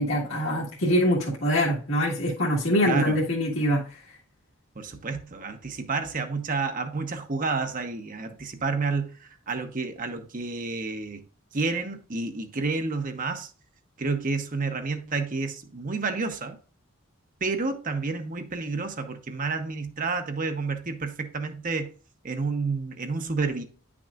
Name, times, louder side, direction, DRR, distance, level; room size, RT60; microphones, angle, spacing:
voice 1, 0.0-4.0, equal, 70° left, 1.8 m, -24 dB
voice 2, 2.9-3.2 4.8-11.2 11.5-13.5 14.0-16.6 17.4-21.9 22.2-23.6, right 4 dB, 40° right, 0.9 m, -30 dB
9.4 x 6.0 x 2.4 m
head